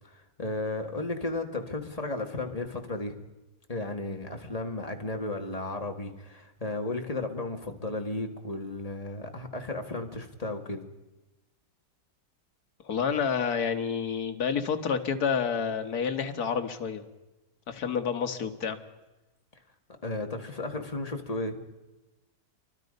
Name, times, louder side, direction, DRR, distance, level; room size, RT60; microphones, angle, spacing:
voice 1, 0.0-3.2 3.7-10.9 20.0-21.6, left 2 dB, 20° left, 4 dB, 2.0 m, -34 dB
voice 2, 12.8-17.0 17.7-18.8, left 6 dB, 65° left, 7 dB, 2.0 m, -29 dB
29.5 x 23.5 x 5.4 m, 1.1 s
omnidirectional pair, 1.8 m